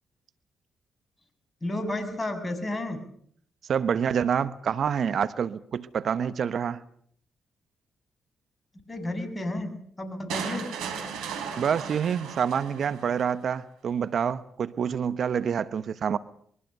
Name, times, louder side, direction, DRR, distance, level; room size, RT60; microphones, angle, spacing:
voice 1, 1.6-3.0 8.9-10.7, left 1 dB, 30° left, 9 dB, 7.0 m, -32 dB
voice 2, 3.7-6.8 11.6-16.2, right 7 dB, 65° right, 15 dB, 1.0 m, -27 dB
sound 1, 10.3-13.3, right 6 dB, 80° right, 4.0 m, -36 dB
24.0 x 23.0 x 6.8 m, 0.63 s
hypercardioid pair, 45°, 0 cm